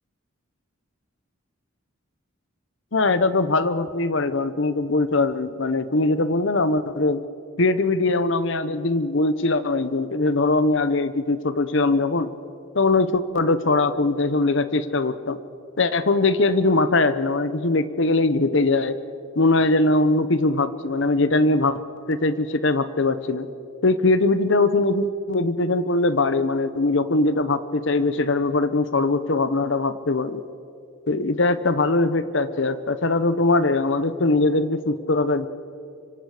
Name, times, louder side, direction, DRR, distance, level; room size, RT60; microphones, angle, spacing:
voice 1, 2.9-7.2 7.6-12.3 12.7-15.4 15.8-19.0 19.4-21.8 22.1-23.5 23.8-30.4 31.1-35.5, left 2 dB, 60° left, 13 dB, 0.9 m, -21 dB
25.0 x 25.0 x 5.0 m, 2.6 s
head